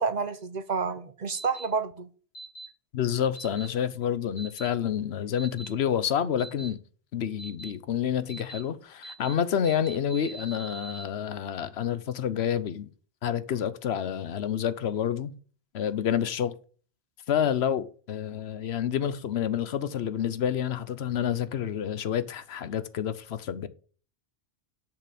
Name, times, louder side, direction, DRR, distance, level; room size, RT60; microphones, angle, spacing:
voice 1, 0.0-2.1, right 5 dB, 50° right, 0.8 m, -29 dB
sound 1, 1.3-1.7 2.4-2.7 3.4-3.7 4.4-4.7 5.4-5.7 6.4-6.7 7.4-7.7 8.3-8.6 9.0-9.3 9.6-11.0, right 3 dB, 65° left, 2.6 m, -42 dB
voice 2, 2.9-6.8 7.1-12.9 13.2-15.3 15.7-16.5 17.3-23.7, left 9 dB, 90° left, 1.0 m, -28 dB
7.1 x 5.8 x 5.0 m
omnidirectional pair, 1.0 m